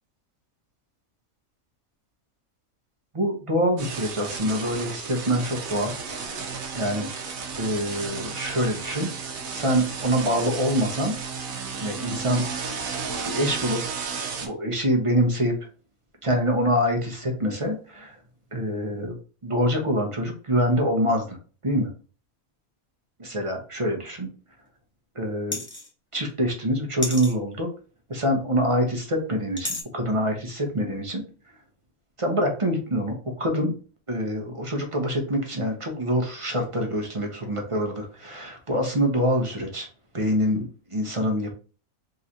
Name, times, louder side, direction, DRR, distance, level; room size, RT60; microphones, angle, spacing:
voice 1, 3.1-5.9 6.2-6.4 6.7-9.1 9.5-11.2 11.8-12.5 13.2-13.9 14.4-15.6 16.2-18.2 18.5-19.2 19.4-21.4 21.6-21.9 23.2-24.3 25.1-25.6 26.1-27.7 28.1-31.2 32.2-33.7 34.1-39.9 40.1-41.5, equal, 30° right, 2 dB, 0.7 m, -25 dB
sound 1, 3.8-14.5, right 5 dB, 70° right, 1.2 m, -33 dB
sound 2, 25.5-25.9 27.0-27.3 29.6-29.8, left 2 dB, 15° left, 0.5 m, -30 dB
3.7 x 3.2 x 2.7 m, 0.38 s
omnidirectional pair, 1.5 m